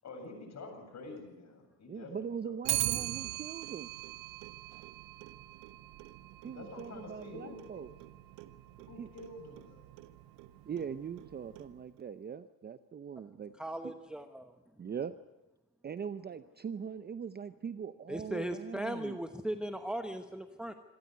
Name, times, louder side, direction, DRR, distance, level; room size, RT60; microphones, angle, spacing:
voice 1, 0.0-3.0 6.5-7.6 8.9-9.8, left 2 dB, 40° left, 4 dB, 7.8 m, -48 dB
voice 2, 1.9-3.9 6.4-7.9 9.0-9.1 10.6-13.5 13.8-13.9 14.8-15.1 15.8-19.2, right 7 dB, 25° right, 12 dB, 0.7 m, -41 dB
Clock, 2.6-12.0, right 16 dB, 75° right, 1.3 m, -41 dB
voice 3, 13.6-14.5 18.1-20.7, right 1 dB, ahead, 6 dB, 1.0 m, -38 dB
26.0 x 13.5 x 9.6 m, 1.1 s
cardioid pair, 115°, 43 cm